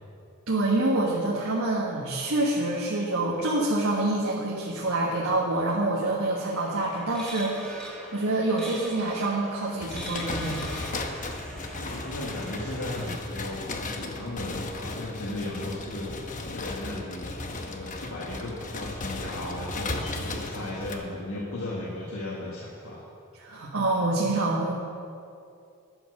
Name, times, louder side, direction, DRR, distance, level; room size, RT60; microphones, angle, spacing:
voice 1, 0.5-10.6 23.4-24.7, right 2 dB, 80° right, -4 dB, 1.5 m, -26 dB
sound 1, 6.4-13.1, right 1 dB, 5° left, 1.4 m, -42 dB
sound 2, 9.8-21.0, left 2 dB, 40° left, 0.9 m, -35 dB
voice 2, 11.7-16.1 16.5-23.0, left 1 dB, 85° left, -5 dB, 1.6 m, -36 dB
10.0 x 9.8 x 6.4 m, 2.5 s
head